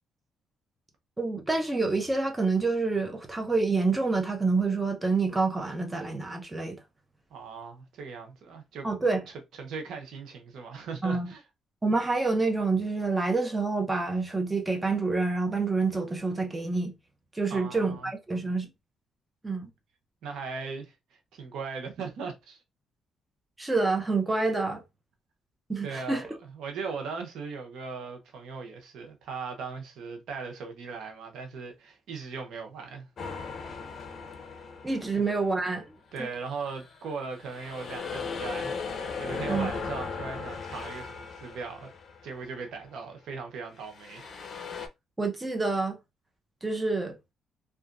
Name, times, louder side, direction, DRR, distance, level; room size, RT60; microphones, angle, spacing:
voice 1, 1.2-6.8 8.8-9.2 11.0-11.3 11.8-16.9 17.3-18.7 19.4-19.7 23.6-24.8 25.7-26.2 34.8-35.9 39.5-39.7 45.2-46.0 46.6-47.2, right 3 dB, 15° right, 0.8 m, -27 dB
voice 2, 7.3-8.9 9.6-11.4 17.5-18.1 20.2-22.6 25.8-26.3 26.5-33.1 35.1-35.2 36.1-41.9 42.2-44.3, right 5 dB, 80° right, 0.7 m, -38 dB
sound 1, 33.2-35.7 36.2-42.7 43.8-44.9, left 5 dB, 55° left, 0.6 m, -38 dB
2.9 x 2.4 x 2.5 m
cardioid pair, 90°, 0 cm